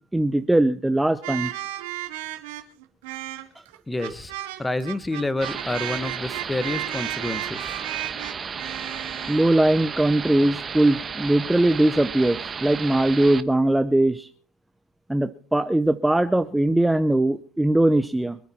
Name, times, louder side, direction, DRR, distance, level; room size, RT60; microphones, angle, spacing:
voice 1, 0.1-1.5 4.0-4.1 9.3-14.3 15.1-18.4, right 1 dB, 5° right, 11 dB, 0.7 m, -20 dB
sound 1, 1.2-9.5, right 15 dB, 80° right, 2.7 m, -34 dB
voice 2, 3.9-4.3 4.6-7.7, left 2 dB, 10° left, 16 dB, 1.2 m, -28 dB
sound 2, 5.4-13.4, right 6 dB, 25° right, 1.2 m, -34 dB
25.5 x 9.3 x 4.3 m, 0.43 s
supercardioid pair, 115°, 0 cm